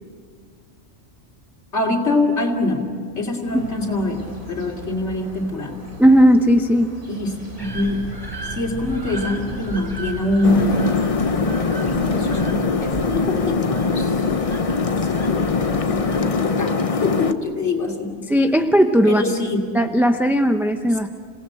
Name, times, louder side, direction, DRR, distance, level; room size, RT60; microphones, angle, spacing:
voice 1, 1.7-2.9 3.1-5.8 7.1-8.1 8.5-11.2 11.9-14.4 14.8-18.2 19.0-19.6 20.9-21.0, left 2 dB, 70° left, 0 dB, 3.2 m, -24 dB
sound 1, 3.4-12.4, equal, 45° right, 4.1 m, -40 dB
voice 2, 6.0-6.9 18.3-19.2 19.7-21.2, equal, ahead, 6 dB, 0.5 m, -16 dB
sound 2, 7.6-16.3, right 2 dB, 20° right, 3.8 m, -35 dB
sound 3, 10.4-17.3, left 4 dB, 35° left, 0.8 m, -22 dB
27.5 x 18.0 x 7.8 m, 2.3 s
omnidirectional pair, 1.2 m